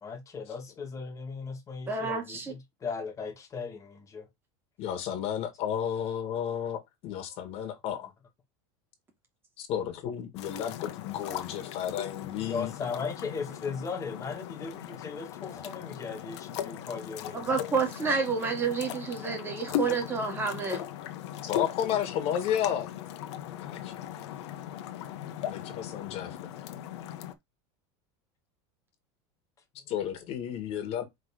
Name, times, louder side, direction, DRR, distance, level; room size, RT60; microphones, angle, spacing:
voice 1, 0.0-4.3 12.4-17.4, left 5 dB, 20° left, 1.8 m, -37 dB
voice 2, 1.9-2.5 17.3-20.8, right 5 dB, 15° right, 2.2 m, -29 dB
voice 3, 4.8-8.1 9.6-12.7 21.4-22.9 23.6-24.0 25.4-26.5 29.9-31.0, left 9 dB, 45° left, 1.9 m, -32 dB
sound 1, 10.4-27.3, left 11 dB, 80° left, 1.1 m, -38 dB
5.4 x 3.8 x 4.9 m
supercardioid pair, 150°, 14 cm